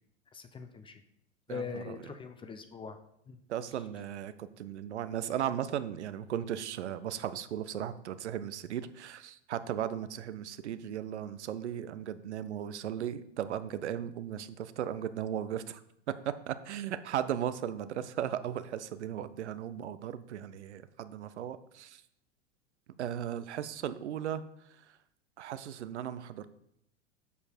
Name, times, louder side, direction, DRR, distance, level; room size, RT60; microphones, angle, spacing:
voice 1, 0.3-1.0 1.5-3.0 3.3-3.4, left 5 dB, 15° left, 8 dB, 0.6 m, -42 dB
voice 2, 1.5-2.0 3.5-15.8 16.1-22.0 23.0-24.4 25.4-26.5, right 10 dB, 70° right, 13 dB, 0.6 m, -36 dB
7.0 x 6.5 x 4.4 m, 0.75 s
figure-of-eight pair, 90°, 36 cm